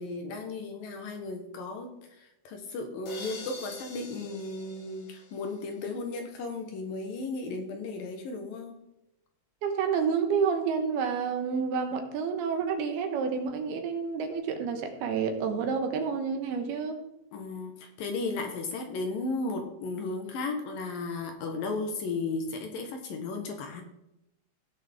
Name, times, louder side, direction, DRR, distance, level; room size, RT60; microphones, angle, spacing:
voice 1, 0.0-8.7 17.3-23.8, left 3 dB, 65° left, 4 dB, 2.7 m, -35 dB
sound 1, 3.1-5.9, left 3 dB, 50° left, 2.1 m, -45 dB
voice 2, 9.6-17.0, right 6 dB, 75° right, 6 dB, 3.0 m, -29 dB
17.0 x 6.5 x 3.6 m, 0.87 s
omnidirectional pair, 4.8 m